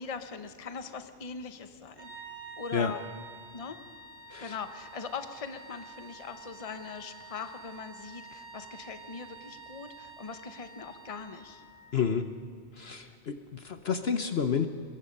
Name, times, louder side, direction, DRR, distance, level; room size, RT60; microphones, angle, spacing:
voice 1, 0.0-2.1 2.6-3.0 3.5-3.8 4.4-11.6, left 5 dB, 30° left, 8 dB, 1.0 m, -41 dB
sound 1, 2.0-11.9, right 4 dB, 40° right, 6.3 m, -49 dB
voice 2, 11.9-12.3 12.8-14.7, left 6 dB, 55° left, 8 dB, 1.1 m, -29 dB
23.5 x 22.0 x 5.4 m, 2.1 s
omnidirectional pair, 1.4 m